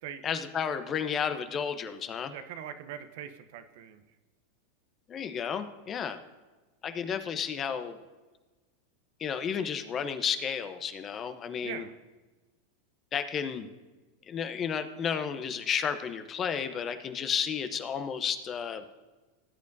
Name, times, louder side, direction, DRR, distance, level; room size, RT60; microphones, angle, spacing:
voice 1, 0.2-2.3 5.1-6.2 6.8-8.0 9.2-11.9 13.1-13.7 14.3-18.9, left 7 dB, 35° left, 10 dB, 0.9 m, -32 dB
voice 2, 2.3-4.0 11.6-11.9, right 9 dB, 60° right, 9 dB, 0.8 m, -41 dB
18.0 x 8.4 x 2.7 m, 1.2 s
hypercardioid pair, 95°, 0 cm